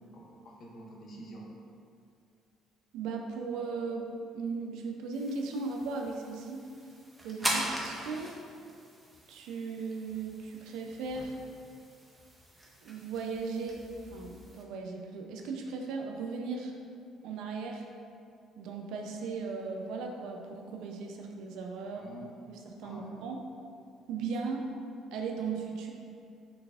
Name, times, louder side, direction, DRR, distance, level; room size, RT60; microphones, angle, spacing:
voice 1, 0.1-1.5 7.4-7.7 21.9-22.3 22.8-23.2, right 1 dB, 45° left, -2 dB, 0.5 m, -48 dB
voice 2, 2.9-6.6 7.2-8.3 9.3-11.4 12.8-16.7 17.2-17.8 18.6-22.1 22.5-23.4 24.1-24.7 25.1-25.9, right 4 dB, 80° right, 2 dB, 0.4 m, -37 dB
sound 1, 5.1-14.6, right 1 dB, 10° right, 0.5 m, -41 dB
3.9 x 3.4 x 2.4 m, 2.4 s
cardioid pair, 130°, 0 cm